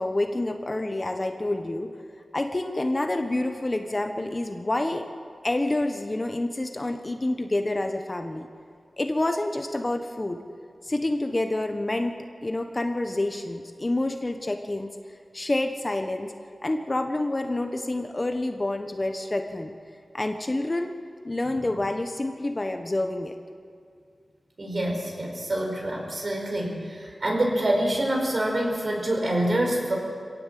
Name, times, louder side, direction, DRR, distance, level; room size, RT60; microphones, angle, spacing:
voice 1, 0.0-1.9 2.3-5.1 5.4-8.5 9.0-10.4 10.8-14.9 15.3-16.3 16.6-19.7 20.1-21.0 21.2-23.4, left 2 dB, 30° left, 6 dB, 1.2 m, -28 dB
voice 2, 24.6-30.0, right 1 dB, 50° right, 0 dB, 5.3 m, -26 dB
24.5 x 17.5 x 7.7 m, 2.3 s
wide cardioid pair, 95°, 0 cm